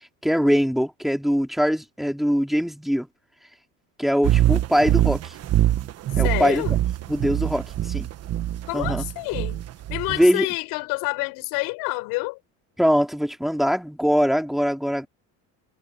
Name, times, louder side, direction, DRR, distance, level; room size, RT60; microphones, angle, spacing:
voice 1, 0.2-3.1 4.0-5.3 6.2-6.8 7.1-8.1 8.7-9.0 10.1-10.4 12.8-15.1, equal, ahead, 3.2 m, -22 dB
sound 1, 4.2-10.3, right 13 dB, 45° right, 1.3 m, -23 dB
voice 2, 6.2-6.8 8.7-9.6 9.9-12.4, left 26 dB, 80° left, 6.4 m, -28 dB
cardioid pair, 135°, 36 cm